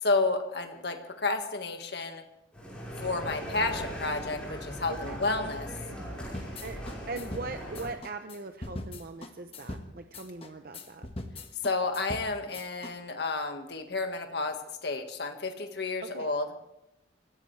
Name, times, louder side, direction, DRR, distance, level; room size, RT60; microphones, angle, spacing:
voice 1, 0.0-2.2 3.0-5.7 11.6-14.5 14.8-16.5, left 3 dB, 60° left, 5 dB, 1.7 m, -31 dB
sound 1, 2.5-7.9, equal, 5° left, 5.2 m, -39 dB
sound 2, 6.2-12.9, left 1 dB, 30° left, 1.4 m, -41 dB
voice 2, 7.1-11.1 16.0-16.3, right 3 dB, 50° right, 7 dB, 0.8 m, -40 dB
25.0 x 16.0 x 3.3 m, 0.87 s
head